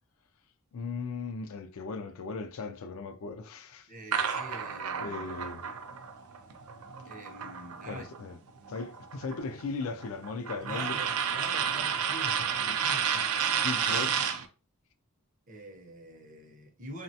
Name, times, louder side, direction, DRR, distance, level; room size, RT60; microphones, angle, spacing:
voice 1, 0.7-3.9 5.0-5.6 7.8-8.4 8.7-11.0 13.1-13.2 13.6-14.2, left 4 dB, 70° left, 0.4 m, -37 dB
voice 2, 3.9-5.3 7.1-8.1 10.6-13.1 13.9-14.1 15.5-17.0, right 1 dB, 35° right, 0.6 m, -45 dB
sound 1, 4.1-8.2 8.5-14.5, right 7 dB, 80° right, 0.4 m, -31 dB
3.2 x 2.1 x 2.7 m
head